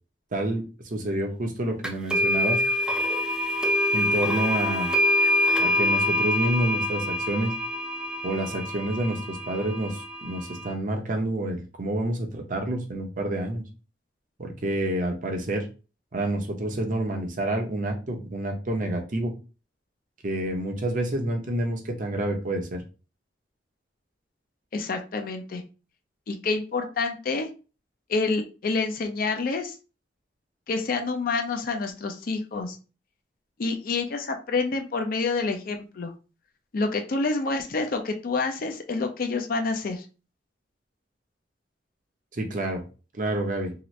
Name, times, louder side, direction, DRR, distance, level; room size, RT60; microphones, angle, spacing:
voice 1, 0.3-0.6 0.9-2.6 3.9-4.9 5.6-7.5 8.2-13.6 14.4-15.7 16.1-19.3 20.2-22.8 42.3-42.8 43.1-43.7, right 1 dB, 50° right, 3 dB, 0.7 m, -28 dB
sound 1, 1.8-10.7, left 1 dB, 5° right, 0.4 m, -25 dB
voice 2, 24.7-25.6 26.3-27.5 28.1-29.7 30.7-32.8 33.6-36.1 36.7-40.0, left 3 dB, 55° left, 5 dB, 0.5 m, -28 dB
2.8 x 2.5 x 3.0 m, 0.33 s
head